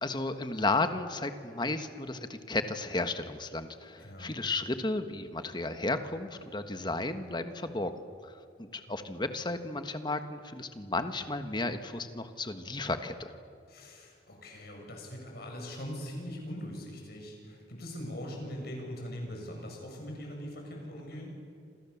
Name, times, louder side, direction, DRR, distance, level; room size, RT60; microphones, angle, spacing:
voice 1, 0.0-13.3, left 2 dB, 25° left, 8 dB, 1.5 m, -33 dB
voice 2, 4.0-4.4 8.9-9.1 13.7-21.3, equal, 55° left, 1 dB, 7.7 m, -41 dB
28.5 x 27.0 x 7.3 m, 2.3 s
head